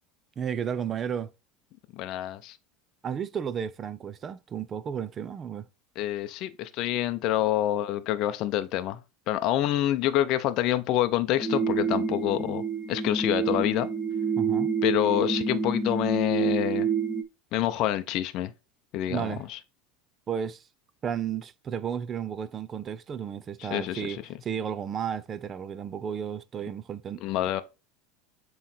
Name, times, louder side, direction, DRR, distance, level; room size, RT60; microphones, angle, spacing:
voice 1, 0.4-1.3 3.0-5.6 14.4-14.7 19.1-19.4 20.3-20.6 21.0-27.2, right 8 dB, 30° right, 0.6 m, -33 dB
voice 2, 1.9-2.6 6.0-9.0 9.3-12.6 12.9-13.9 14.8-16.9 17.5-18.5 18.9-19.6 23.6-24.2 27.2-27.6, left 13 dB, 55° left, 0.6 m, -27 dB
sound 1, 11.4-17.2, right 5 dB, ahead, 1.1 m, -28 dB
7.4 x 3.2 x 4.3 m
supercardioid pair, 115°, 0 cm